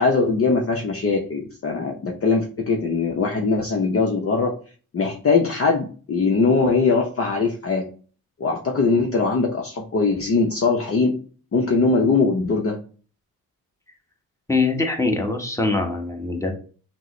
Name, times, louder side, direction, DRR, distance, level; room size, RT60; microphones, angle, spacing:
voice 1, 0.0-4.5 4.9-7.8 8.4-11.1 11.5-12.8, left 4 dB, 35° left, 1 dB, 0.8 m, -21 dB
voice 2, 14.5-16.6, left 3 dB, 5° left, 2 dB, 1.3 m, -23 dB
5.9 x 2.1 x 3.1 m, 0.40 s
hypercardioid pair, 40°, 42 cm